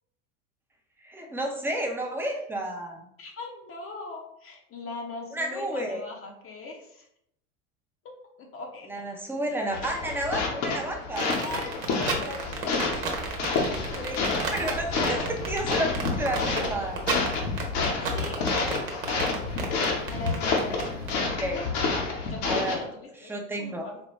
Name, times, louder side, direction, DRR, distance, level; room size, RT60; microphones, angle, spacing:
voice 1, 1.0-3.1 5.3-6.0 8.9-11.4 14.0-14.2 14.5-17.0 21.1-21.6 22.4-22.9 23.2-23.9, right 1 dB, 5° right, 1 dB, 0.6 m, -31 dB
voice 2, 3.2-7.1 8.4-9.0 11.4-13.2 15.0-15.3 18.1-19.4 20.1-21.0 21.4-21.7 22.2-24.0, left 3 dB, 35° left, 1 dB, 0.7 m, -40 dB
sound 1, 9.7-22.7, left 4 dB, 65° left, 1.0 m, -29 dB
sound 2, 11.2-21.1, right 5 dB, 80° right, 1.0 m, -32 dB
Wind, 11.8-17.9, right 4 dB, 30° right, 0.9 m, -42 dB
4.2 x 2.2 x 3.0 m, 0.74 s
hypercardioid pair, 90°, 40 cm